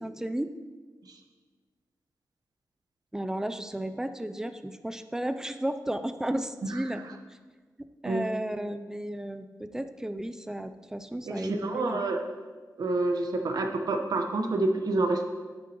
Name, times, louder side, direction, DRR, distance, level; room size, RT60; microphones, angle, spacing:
voice 1, 0.0-0.5 3.1-7.0 8.0-12.0, right 1 dB, 10° right, 9 dB, 0.5 m, -33 dB
voice 2, 11.3-12.2 12.8-15.2, right 2 dB, 70° right, 4 dB, 1.1 m, -28 dB
12.0 x 9.7 x 3.0 m, 1.4 s
wide cardioid pair, 165°, 7 cm